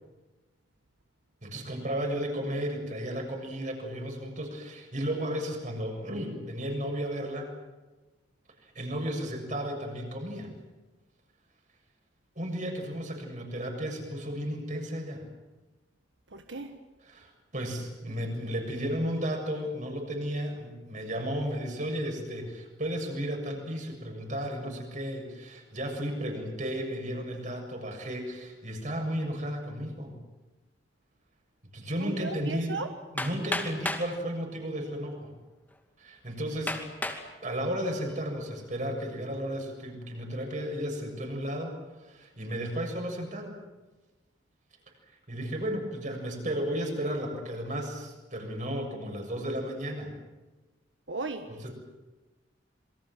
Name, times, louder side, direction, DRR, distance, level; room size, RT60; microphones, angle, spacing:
voice 1, 1.4-7.5 8.6-10.5 12.4-15.3 17.0-30.2 31.7-32.8 33.1-35.3 36.0-36.8 37.4-43.6 45.3-50.1 51.5-51.7, equal, 45° right, 3 dB, 7.0 m, -34 dB
voice 2, 16.3-16.7 32.0-32.9 51.1-51.5, right 3 dB, 90° right, 7 dB, 1.5 m, -36 dB
Hammer, 33.2-34.1 35.0-35.1 35.7-35.8 36.7-37.3 37.9-38.3, left 2 dB, 10° left, 2.5 m, -33 dB
27.5 x 23.0 x 7.6 m, 1.2 s
head